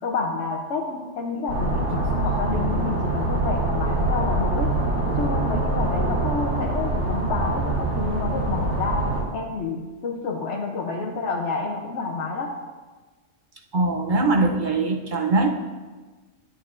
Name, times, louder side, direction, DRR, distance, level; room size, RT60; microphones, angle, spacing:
voice 1, 0.0-4.8 5.2-12.6, left 4 dB, 70° left, -1 dB, 1.0 m, -29 dB
sound 1, 1.5-9.2, right 2 dB, 80° right, 2.4 m, -24 dB
voice 2, 13.7-15.5, right 3 dB, 50° right, 2 dB, 0.7 m, -21 dB
11.0 x 8.3 x 2.5 m, 1.3 s
omnidirectional pair, 1.2 m